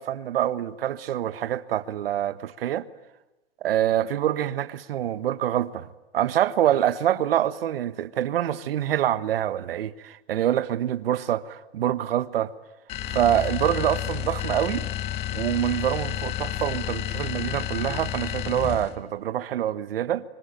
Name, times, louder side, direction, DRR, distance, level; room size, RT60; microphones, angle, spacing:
voice 1, 0.0-2.9 3.6-5.9 6.1-12.5 13.1-14.9 15.3-20.2, right 11 dB, 60° right, 1.4 m, -25 dB
sound 1, 12.9-19.0, left 11 dB, 20° left, 0.9 m, -31 dB
25.0 x 25.0 x 9.0 m
hypercardioid pair, 155°, 33 cm